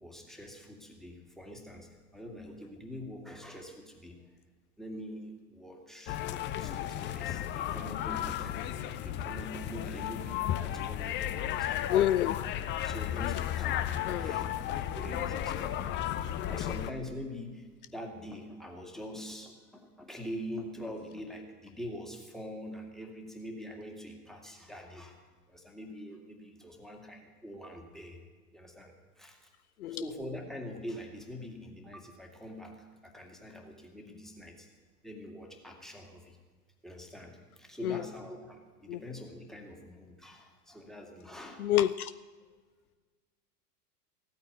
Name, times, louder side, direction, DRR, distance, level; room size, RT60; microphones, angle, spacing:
voice 1, 0.0-4.3 4.8-6.2 6.6-11.9 12.8-25.2 25.5-28.2 28.5-29.5 29.9-34.7 35.0-36.4 36.8-41.7, equal, ahead, 2.2 m, -44 dB
sound 1, 6.1-16.9, left 11 dB, 25° left, 0.6 m, -34 dB
voice 2, 11.9-12.3 14.1-14.3 29.8-30.0 37.8-38.0 38.9-39.0 41.6-42.1, left 12 dB, 65° left, 0.6 m, -27 dB
15.5 x 9.1 x 9.3 m
figure-of-eight pair, 90°, 47 cm